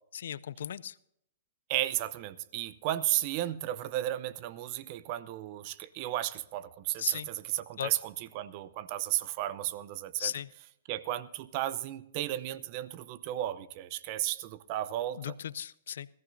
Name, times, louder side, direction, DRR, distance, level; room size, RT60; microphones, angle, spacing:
voice 1, 0.1-1.0 7.0-7.3 7.8-7.9 10.2-10.5 15.2-16.1, left 9 dB, 70° left, 20 dB, 0.4 m, -36 dB
voice 2, 1.7-10.3 10.9-15.3, right 14 dB, 45° right, 16 dB, 0.7 m, -34 dB
21.5 x 14.5 x 2.6 m, 0.76 s
hypercardioid pair, 130°, 0 cm